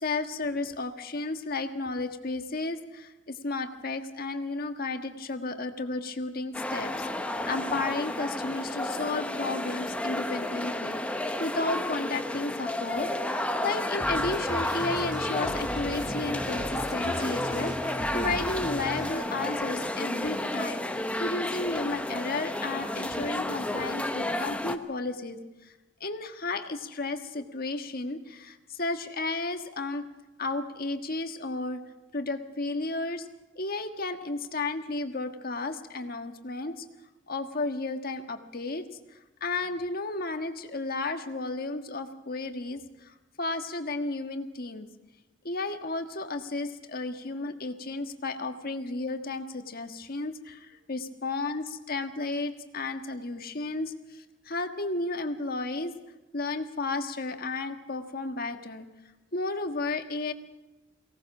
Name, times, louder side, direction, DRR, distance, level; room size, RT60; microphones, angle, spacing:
voice 1, 0.0-20.9 21.2-25.4 26.0-30.0 30.4-31.8 32.1-33.3 33.5-36.8 37.3-38.9 39.4-42.8 43.4-44.9 45.4-53.9 54.4-55.9 56.3-58.8 59.3-60.3, left 3 dB, 50° left, 7 dB, 1.5 m, -33 dB
sound 1, 6.5-24.8, left 1 dB, 5° left, 1.0 m, -31 dB
sound 2, 14.0-19.1, equal, 25° right, 2.2 m, -39 dB
23.0 x 18.0 x 6.2 m, 1.1 s
head